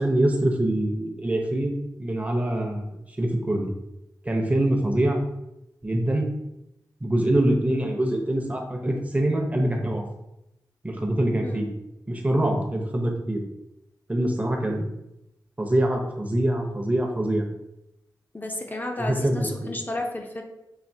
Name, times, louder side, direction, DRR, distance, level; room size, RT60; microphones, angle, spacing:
voice 1, 0.0-1.7 2.0-3.7 4.2-5.2 5.8-6.3 7.0-10.0 10.8-11.7 12.1-13.4 14.1-14.9 15.6-17.4 19.0-19.7, right 1 dB, 20° right, 1 dB, 0.8 m, -24 dB
voice 2, 18.3-20.4, left 1 dB, 25° left, 1 dB, 0.6 m, -32 dB
5.7 x 2.7 x 2.7 m, 0.88 s
wide cardioid pair, 80°, 7 cm